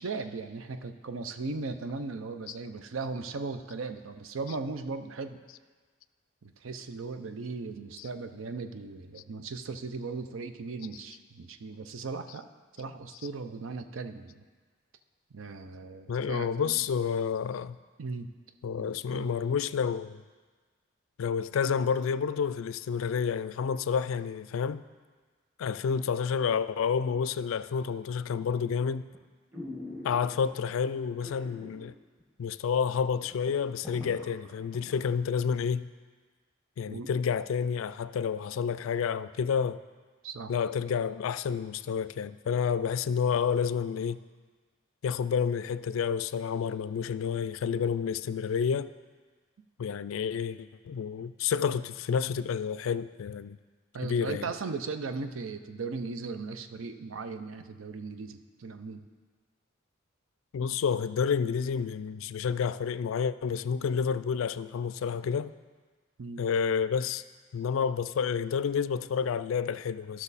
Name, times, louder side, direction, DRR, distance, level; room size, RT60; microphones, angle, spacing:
voice 1, 0.0-5.4 6.4-12.4 12.8-14.4 15.3-16.8 18.0-18.3 18.8-19.3 36.9-37.1 40.2-40.5 53.9-59.0 66.2-66.4, right 4 dB, 80° right, 0.6 m, -37 dB
voice 2, 16.1-17.8 18.6-20.2 21.2-24.8 25.6-29.1 30.0-31.9 32.4-35.9 36.8-39.8 40.5-44.2 45.0-48.9 49.8-53.6 54.0-54.5 60.5-65.5 66.4-67.2 67.5-70.2, left 6 dB, 80° left, 0.3 m, -29 dB
sound 1, 29.1-29.2 29.5-30.6 31.2-31.9 32.2-32.3 32.8-32.9 33.1-35.0 35.4-35.5, left 2 dB, 10° right, 1.3 m, -43 dB
13.5 x 6.1 x 4.1 m
head